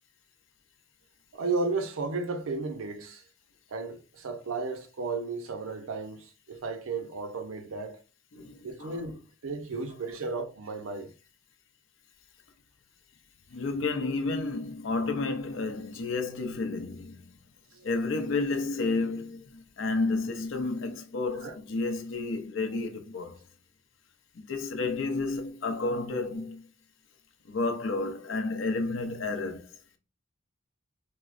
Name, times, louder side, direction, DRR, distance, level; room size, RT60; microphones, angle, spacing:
voice 1, 1.3-3.2 3.7-8.0 8.6-11.1 17.7-17.9 21.3-21.6, right 3 dB, 90° right, 0.6 m, -34 dB
voice 2, 8.3-9.0 13.5-17.3 17.8-23.4 24.4-26.7 27.5-29.7, left 3 dB, 70° left, 0.6 m, -31 dB
4.5 x 2.1 x 2.4 m
head